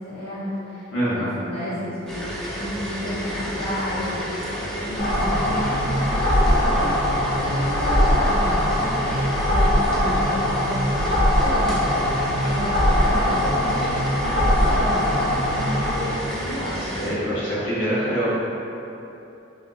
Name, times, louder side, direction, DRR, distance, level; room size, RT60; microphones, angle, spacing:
voice 1, 0.0-4.2 4.8-7.0 7.4-8.5 8.8-16.8, equal, 30° left, -13 dB, 0.9 m, -32 dB
voice 2, 0.9-1.3 16.8-18.3, equal, 75° left, -11 dB, 1.2 m, -25 dB
sound 1, 2.1-17.1, equal, 5° left, 0.5 m, -31 dB
sound 2, 5.0-16.0, equal, 50° left, 0.6 m, -21 dB
3.4 x 2.8 x 2.4 m, 2.9 s
head